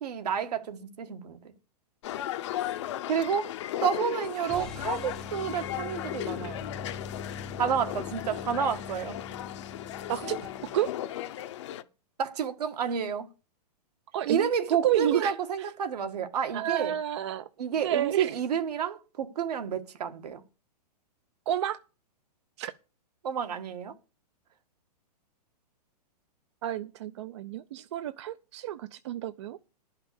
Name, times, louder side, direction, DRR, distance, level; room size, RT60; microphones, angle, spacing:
voice 1, 0.0-1.5 3.1-3.5 3.8-6.7 7.6-9.2 12.2-13.3 14.2-17.0 17.6-20.4 23.2-24.0, right 7 dB, 70° right, 1.6 m, -30 dB
sound 1, 2.0-11.8, left 13 dB, 45° left, 0.8 m, -36 dB
sound 2, 4.5-10.9, left 4 dB, 5° left, 0.5 m, -43 dB
voice 2, 10.1-10.9 14.1-14.5 14.8-15.3 16.5-17.5 17.8-18.3 21.5-21.8 22.6-22.7 26.6-29.6, right 11 dB, 45° right, 0.5 m, -30 dB
11.5 x 5.7 x 6.9 m
hypercardioid pair, 170°, 21 cm